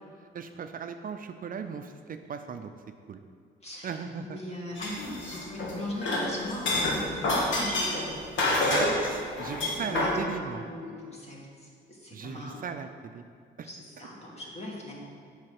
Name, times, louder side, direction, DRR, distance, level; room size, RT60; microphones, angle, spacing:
voice 1, 0.3-2.7 3.1-3.2 3.8-4.6 8.7-10.6 12.1-13.2 13.6-13.7 14.0-14.1, right 6 dB, 45° right, 7 dB, 0.5 m, -37 dB
voice 2, 3.6-4.0 4.2-8.1 9.6-10.1 10.5-12.6 13.6-14.9, left 1 dB, 30° left, -3 dB, 2.3 m, -39 dB
sound 1, 4.8-5.7 6.0-10.2, left 2 dB, 75° left, 1.7 m, -28 dB
7.6 x 5.6 x 6.0 m, 2.1 s
cardioid pair, 90°, 20 cm